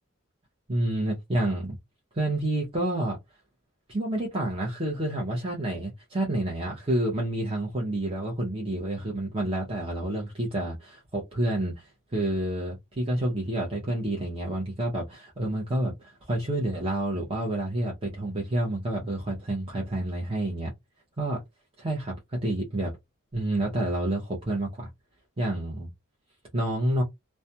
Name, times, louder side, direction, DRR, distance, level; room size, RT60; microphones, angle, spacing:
voice 1, 0.7-1.8 2.1-3.2 3.9-20.7 21.2-21.4 21.8-22.9 23.3-24.9 25.4-25.9 26.5-27.0, right 1 dB, 25° right, 0.7 m, -29 dB
2.4 x 2.2 x 2.7 m
head